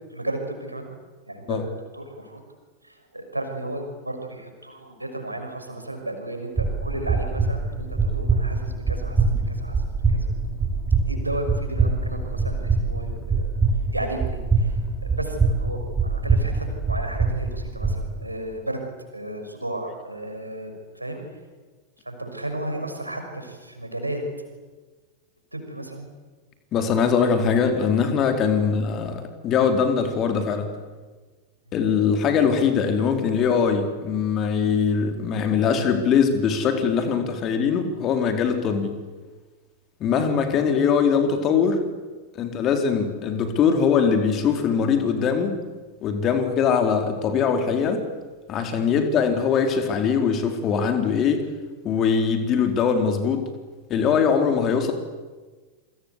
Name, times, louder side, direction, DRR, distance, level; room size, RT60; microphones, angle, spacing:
voice 1, 0.1-0.9 1.3-1.6 1.9-2.4 2.8-10.3 11.1-13.5 13.9-18.8 19.1-21.4 22.0-24.2 25.5-26.1 28.6-28.7 31.7-31.8 48.9-49.0, right 1 dB, 85° right, 4 dB, 5.9 m, -34 dB
sound 1, 6.6-18.0, right 4 dB, 15° right, 4.5 m, -24 dB
voice 2, 26.7-30.7 31.7-38.9 40.0-41.8 42.3-45.5 46.0-48.1 48.5-51.4 51.8-53.4 53.9-54.9, left 6 dB, 35° left, 6 dB, 4.2 m, -22 dB
28.5 x 25.0 x 8.3 m, 1.3 s
figure-of-eight pair, 90°, 0 cm